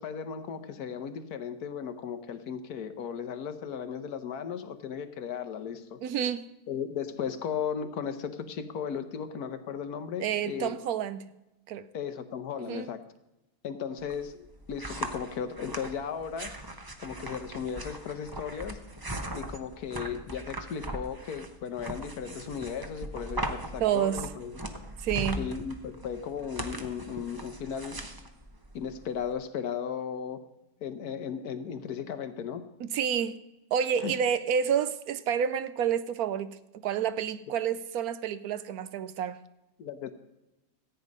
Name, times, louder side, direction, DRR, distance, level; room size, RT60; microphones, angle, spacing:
voice 1, 0.0-6.0 6.7-10.7 11.9-13.0 13.6-16.5 17.0-18.8 19.4-24.5 25.4-28.0 28.7-30.4 30.8-32.7 34.0-34.1 39.8-40.1, left 7 dB, 75° left, 1.4 m, -36 dB
voice 2, 6.0-6.4 10.2-11.3 11.7-11.9 12.6-12.9 23.8-24.2 25.0-25.4 32.8-33.4 33.7-36.6 36.8-39.4, right 8 dB, 75° right, 1.1 m, -29 dB
sound 1, 14.0-29.3, right 1 dB, 20° right, 0.7 m, -39 dB
14.5 x 9.1 x 5.3 m
omnidirectional pair, 1.7 m